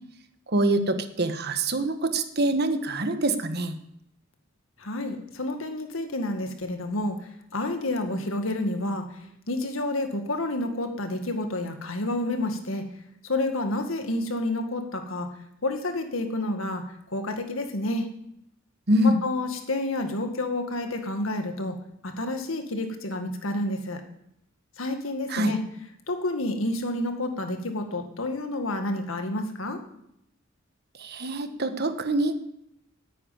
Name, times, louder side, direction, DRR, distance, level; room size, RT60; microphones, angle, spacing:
voice 1, 0.5-3.7 18.9-19.2 25.3-25.5 31.0-32.5, right 1 dB, 55° right, 9 dB, 1.2 m, -25 dB
voice 2, 4.8-7.2 7.5-9.1 9.5-12.8 13.2-15.3 15.6-16.8 17.1-18.1 19.0-21.8 22.0-24.0 24.8-25.6 26.1-29.8, left 1 dB, 80° left, 6 dB, 1.9 m, -29 dB
9.6 x 9.4 x 9.3 m, 0.76 s
head